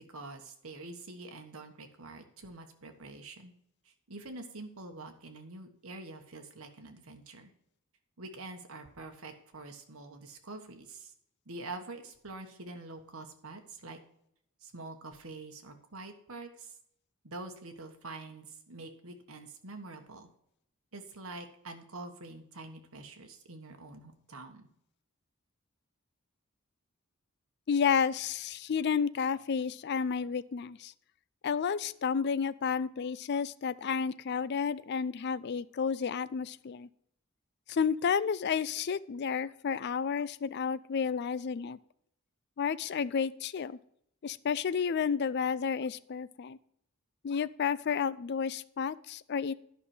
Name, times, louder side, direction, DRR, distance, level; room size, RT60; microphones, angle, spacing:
voice 1, 0.0-3.5 3.8-7.5 8.2-11.1 11.4-14.0 14.6-16.8 17.2-20.3 20.9-24.7, right 2 dB, 75° right, 5 dB, 1.4 m, -46 dB
voice 2, 27.7-30.9 31.4-36.9 37.7-41.8 42.6-43.8 44.2-46.6 47.2-49.5, left 6 dB, 50° left, 17 dB, 0.4 m, -31 dB
11.0 x 5.8 x 4.9 m, 0.72 s
head